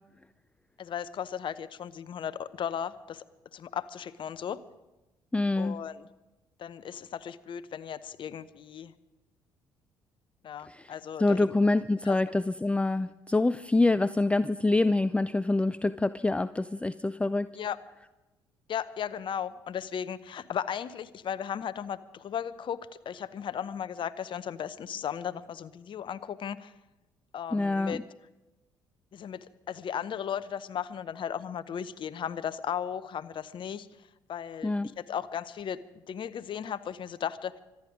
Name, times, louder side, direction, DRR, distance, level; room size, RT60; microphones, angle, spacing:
voice 1, 0.8-3.2 3.5-4.6 5.6-6.1 6.6-8.9 10.4-11.5 12.0-12.2 17.5-17.8 18.7-26.7 27.3-28.0 29.1-33.9 34.3-35.8 36.1-37.6, left 8 dB, 45° left, 14 dB, 0.8 m, -36 dB
voice 2, 5.3-5.8 10.7-10.9 11.2-17.5 27.5-28.0 34.6-34.9, left 2 dB, 10° left, 15 dB, 0.5 m, -26 dB
25.5 x 9.6 x 5.1 m, 1.0 s
hypercardioid pair, 50°, 11 cm